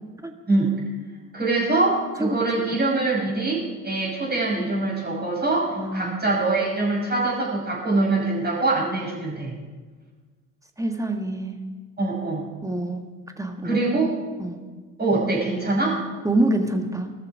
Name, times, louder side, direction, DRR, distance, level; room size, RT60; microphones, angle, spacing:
voice 1, 0.5-0.8 1.3-9.6 12.0-12.5 13.6-14.1 15.0-16.0, right 2 dB, 25° right, -3 dB, 6.2 m, -24 dB
voice 2, 5.7-6.2 10.8-11.6 12.6-13.0 13.4-13.8 14.4-14.6 16.2-17.1, right 1 dB, 10° right, 5 dB, 1.7 m, -26 dB
20.0 x 13.5 x 4.9 m, 1.4 s
figure-of-eight pair, 60°, 42 cm